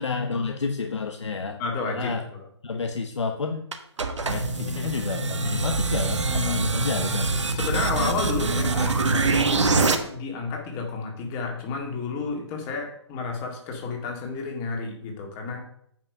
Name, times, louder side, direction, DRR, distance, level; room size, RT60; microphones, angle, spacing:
voice 1, 0.0-1.6 1.9-2.2 2.6-3.7 4.2-7.4, left 4 dB, 80° left, 5 dB, 0.9 m, -30 dB
voice 2, 1.6-2.4 6.3-6.8 7.5-15.6, left 4 dB, 25° left, 2 dB, 2.1 m, -31 dB
sound 1, 3.7-10.0, right 4 dB, 85° right, 1.2 m, -24 dB
9.0 x 5.8 x 5.4 m, 0.69 s
hypercardioid pair, 145°, 15 cm